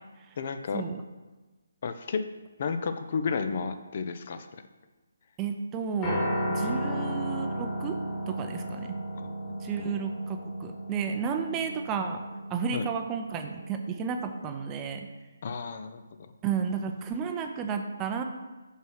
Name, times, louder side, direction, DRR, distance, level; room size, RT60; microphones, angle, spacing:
voice 1, 0.4-0.8 1.8-2.2 2.6-4.5 9.2-9.9 12.7-12.9 15.4-16.3, left 5 dB, 45° left, 9 dB, 0.5 m, -32 dB
voice 2, 5.4-8.0 8.3-9.0 9.6-12.2 12.5-15.1 16.4-18.2, right 6 dB, 20° right, 5 dB, 0.5 m, -32 dB
Piano, 6.0-14.3, equal, 25° left, 1.8 m, -34 dB
6.1 x 5.5 x 4.6 m, 1.2 s
figure-of-eight pair, 145°, 0 cm